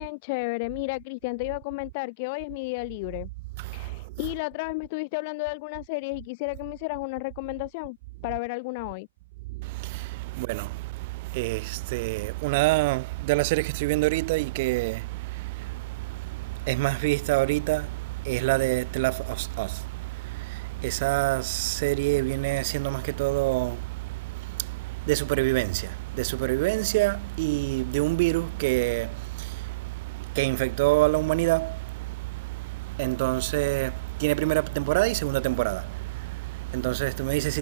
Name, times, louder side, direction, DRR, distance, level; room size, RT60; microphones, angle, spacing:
voice 1, 0.0-3.3 3.7-8.0 8.2-9.1, left 28 dB, 40° left, 2.2 m, -32 dB
voice 2, 3.6-4.3 9.5-37.6, right 22 dB, 40° right, 2.8 m, -27 dB
figure-of-eight pair, 120°, 0 cm